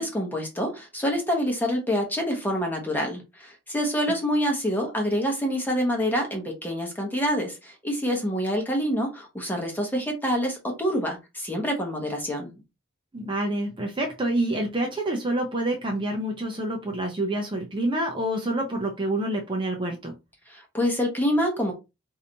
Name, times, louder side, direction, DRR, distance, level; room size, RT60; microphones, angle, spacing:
voice 1, 0.0-12.5 20.5-21.7, equal, 10° left, 1 dB, 1.0 m, -26 dB
voice 2, 13.1-20.1, right 1 dB, 25° right, 1 dB, 0.7 m, -27 dB
4.8 x 2.7 x 2.8 m, 0.25 s
head